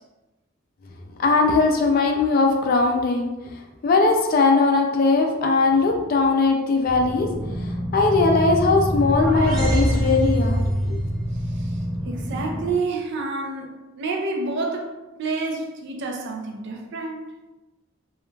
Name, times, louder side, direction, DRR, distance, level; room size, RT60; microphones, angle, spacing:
voice 1, 1.2-3.3 3.8-7.3 7.9-11.0, left 3 dB, 45° left, 2 dB, 0.3 m, -19 dB
sound 1, 6.9-12.8, equal, 25° left, 0.8 m, -26 dB
sound 2, 8.7-10.9, equal, 15° right, 0.7 m, -27 dB
voice 2, 12.1-17.2, right 3 dB, 55° right, 2 dB, 0.4 m, -29 dB
2.3 x 2.1 x 3.1 m, 1.1 s
head